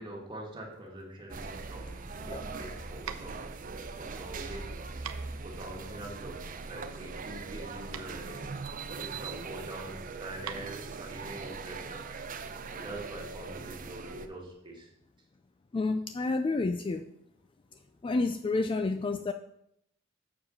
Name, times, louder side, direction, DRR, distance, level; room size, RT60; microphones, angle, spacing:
voice 1, 0.0-3.4 4.0-4.8 5.4-8.5 9.0-12.0 12.7-14.9, right 1 dB, 25° right, -1 dB, 1.9 m, -44 dB
sound 1, 1.3-14.3, right 4 dB, 40° right, 0.6 m, -41 dB
sound 2, 3.0-12.0, right 8 dB, 85° right, 0.7 m, -47 dB
voice 2, 15.7-17.0 18.0-19.3, left 3 dB, 25° left, 8 dB, 0.3 m, -29 dB
7.3 x 4.7 x 6.3 m, 0.76 s
head